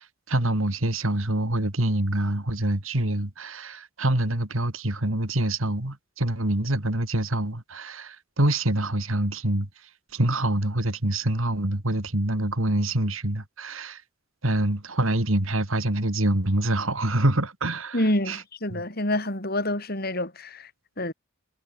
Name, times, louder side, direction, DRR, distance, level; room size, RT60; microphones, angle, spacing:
voice 1, 0.0-9.7 10.1-14.0 14.4-18.0 18.3-18.4 18.7-18.8, right 1 dB, 85° right, 3.3 m, -25 dB
voice 2, 17.9-20.7 21.0-21.1, left 1 dB, 50° left, 7.2 m, -27 dB
head